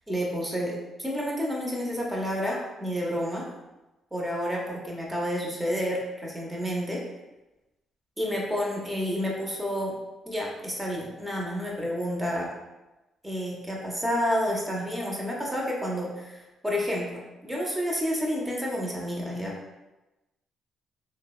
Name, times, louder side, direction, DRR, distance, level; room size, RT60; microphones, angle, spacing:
voice 1, 0.1-3.4 4.1-7.0 8.2-9.9 10.3-12.5 13.2-19.5, equal, 10° right, -2 dB, 0.7 m, -30 dB
3.2 x 2.0 x 2.2 m, 1.0 s
cardioid pair, 90°, 0 cm